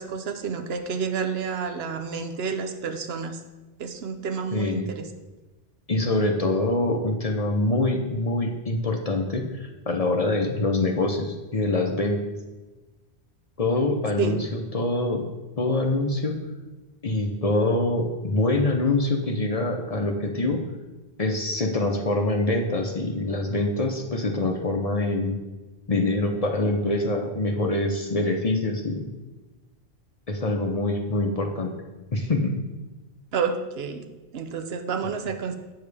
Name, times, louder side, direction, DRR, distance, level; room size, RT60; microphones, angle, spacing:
voice 1, 0.0-3.4 3.8-5.0 14.2-14.4 33.3-34.1 34.3-35.5, right 5 dB, 70° right, 7 dB, 0.9 m, -29 dB
voice 2, 4.5-4.9 5.9-12.2 13.6-15.2 15.6-16.4 17.0-20.6 21.2-25.3 25.9-29.1 30.3-31.7 32.1-32.6, left 2 dB, 40° left, 2 dB, 0.7 m, -25 dB
8.8 x 6.9 x 3.3 m, 1.2 s
omnidirectional pair, 1.1 m